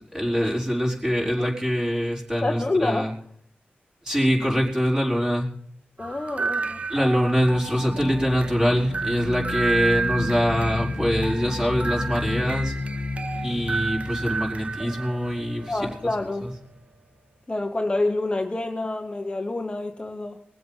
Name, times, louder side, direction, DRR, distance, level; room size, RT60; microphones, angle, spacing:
voice 1, 0.1-3.1 4.0-5.5 6.9-12.7 13.4-16.0 16.4-16.5, equal, 15° right, -3 dB, 4.6 m, -24 dB
voice 2, 2.4-3.1 6.0-6.8 15.7-16.5 17.5-20.4, left 2 dB, 25° left, 4 dB, 1.1 m, -27 dB
sound 1, 6.0-16.8, right 4 dB, 35° right, 0.8 m, -32 dB
sound 2, 7.2-15.8, left 3 dB, 55° left, 0.9 m, -32 dB
22.0 x 7.7 x 5.5 m, 0.63 s
wide cardioid pair, 85°, 4 cm